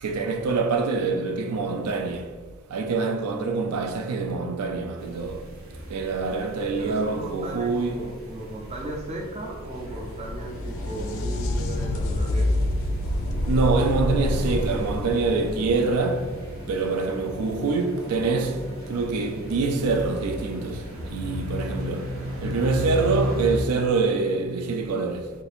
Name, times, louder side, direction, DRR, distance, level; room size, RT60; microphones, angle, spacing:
voice 1, 0.0-2.3 2.7-5.4 5.9-8.1 13.5-16.3 16.7-18.6 18.9-20.8 21.1-22.1 22.4-25.3, right 4 dB, 90° right, 0.4 m, -25 dB
sound 1, 5.0-23.6, equal, 65° right, 0.7 m, -36 dB
voice 2, 6.8-12.6, right 1 dB, 30° right, 0.5 m, -36 dB
sound 2, 7.6-22.6, left 1 dB, 10° left, 0.7 m, -42 dB
sound 3, 9.6-17.2 20.6-20.7 21.7-21.8, left 1 dB, 65° left, 0.3 m, -28 dB
2.6 x 2.6 x 4.1 m
head